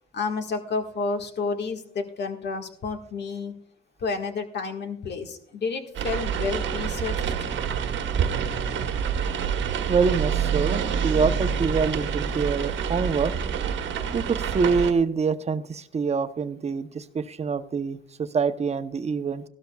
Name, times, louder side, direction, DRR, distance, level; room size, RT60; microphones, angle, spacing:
voice 1, 0.1-3.5 4.0-7.3, left 4 dB, 60° left, 4 dB, 1.7 m, -30 dB
sound 1, 5.9-14.9, right 7 dB, 70° right, 1.2 m, -27 dB
voice 2, 9.9-13.3 14.1-19.4, right 5 dB, 35° right, 10 dB, 0.8 m, -25 dB
16.5 x 12.5 x 2.3 m, 0.67 s
cardioid pair, 90°, 20 cm